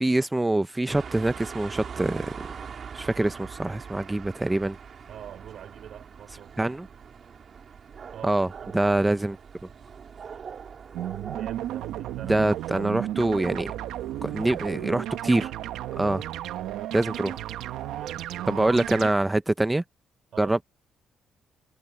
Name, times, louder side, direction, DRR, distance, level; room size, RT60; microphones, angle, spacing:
voice 1, 0.0-2.3 2.9-4.8 6.6-6.9 8.2-8.5 8.7-9.4 9.6-9.7 12.3-13.7 14.2-15.5 16.0-16.2 16.9-17.4 18.5-19.8 20.4-20.6, right 2 dB, 15° right, 0.6 m, -24 dB
sound 1, 0.9-19.3, right 6 dB, 50° right, 3.4 m, -44 dB
voice 2, 5.1-6.7 8.1-9.0 11.3-12.5 12.8-12.9 17.9-19.2 20.3-20.6, right 10 dB, 70° right, 3.3 m, -44 dB
sound 2, 10.9-19.1, right 13 dB, 90° right, 1.0 m, -34 dB
cardioid pair, 90°, 0 cm